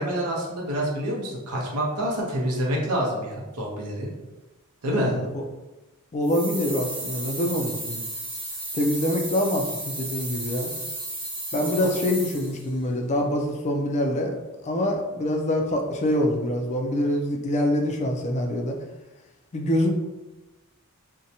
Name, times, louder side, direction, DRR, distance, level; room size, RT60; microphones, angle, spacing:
voice 1, 0.0-4.1 4.8-5.2 11.6-11.9, right 1 dB, 80° right, -2 dB, 0.7 m, -27 dB
voice 2, 4.8-5.4 6.1-8.0 8.7-10.7 11.5-14.3 14.6-18.8 19.5-19.9, left 1 dB, 30° left, 2 dB, 0.3 m, -25 dB
sound 1, 6.2-12.7, right 1 dB, 20° right, 0.7 m, -34 dB
2.6 x 2.1 x 2.7 m, 1.1 s
head